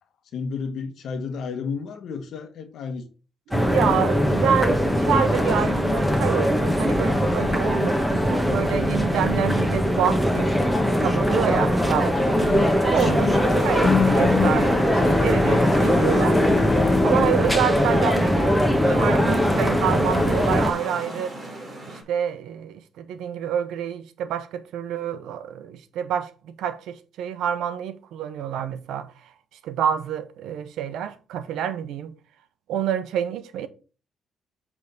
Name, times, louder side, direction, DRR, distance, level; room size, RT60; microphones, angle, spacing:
voice 1, 0.3-3.1 3.5-4.3 12.4-13.7, left 5 dB, 70° left, 1.3 m, -33 dB
sound 1, 3.5-20.7, equal, ahead, 1.3 m, -21 dB
voice 2, 3.5-10.6 11.0-16.4 17.0-21.3 21.9-29.1 29.6-32.1 32.7-33.7, right 9 dB, 85° right, 0.8 m, -28 dB
sound 2, 6.5-22.0, right 1 dB, 40° right, 3.1 m, -38 dB
Bowed string instrument, 13.8-18.9, left 6 dB, 50° left, 0.4 m, -26 dB
8.0 x 3.6 x 5.1 m
cardioid pair, 90°, 0 cm